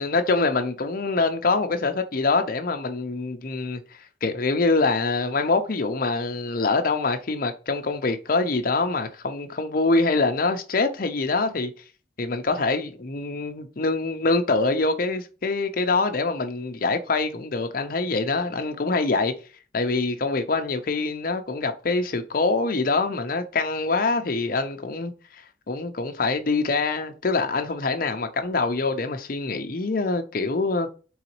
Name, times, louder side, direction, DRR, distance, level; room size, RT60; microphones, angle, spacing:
voice 1, 0.0-3.8 4.2-11.7 12.2-19.3 19.7-30.9, left 3 dB, 50° left, 0.6 m, -25 dB
3.9 x 3.9 x 3.0 m
head